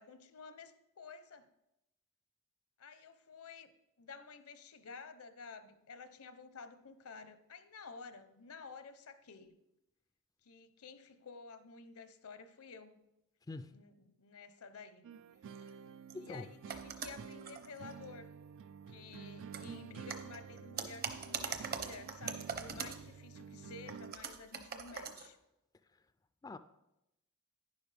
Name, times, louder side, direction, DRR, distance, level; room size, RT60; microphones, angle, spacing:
voice 1, 0.0-1.5 2.8-3.7 4.0-9.6 10.4-13.0 13.7-15.1 16.1-18.3 18.9-25.4, left 4 dB, 80° left, 11 dB, 0.8 m, -52 dB
voice 2, 13.5-13.8 15.6-15.7 16.1-16.5 26.4-26.6, left 2 dB, 15° left, 11 dB, 0.3 m, -44 dB
sound 1, 15.0-24.1, right 6 dB, 60° right, 0.3 m, -50 dB
sound 2, 15.6-15.7 16.1-16.3 16.7-18.0 19.5-19.7 20.1-23.1 23.9-25.3, right 6 dB, 45° right, 0.9 m, -42 dB
11.0 x 10.0 x 3.4 m, 0.89 s
head